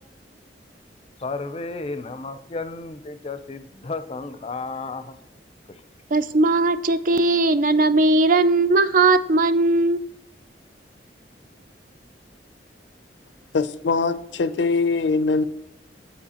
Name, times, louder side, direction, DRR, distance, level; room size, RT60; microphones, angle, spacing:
voice 1, 1.2-5.0, left 3 dB, 35° left, 0.5 m, -32 dB
voice 2, 6.1-10.0, right 2 dB, 50° right, 0.4 m, -18 dB
voice 3, 13.5-15.4, left 4 dB, 90° left, 0.5 m, -22 dB
9.9 x 4.4 x 2.9 m
head